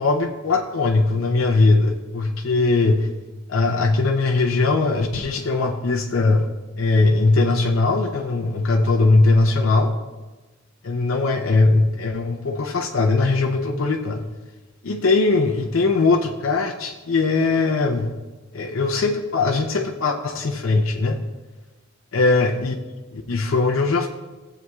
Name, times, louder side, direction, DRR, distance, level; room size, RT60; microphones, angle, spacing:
voice 1, 0.0-3.1 3.5-6.5 6.8-9.9 10.8-14.3 14.8-18.1 18.5-21.2 22.1-22.8 23.1-24.1, left 3 dB, 80° left, 1 dB, 0.7 m, -20 dB
15.5 x 7.8 x 2.4 m, 1.2 s
head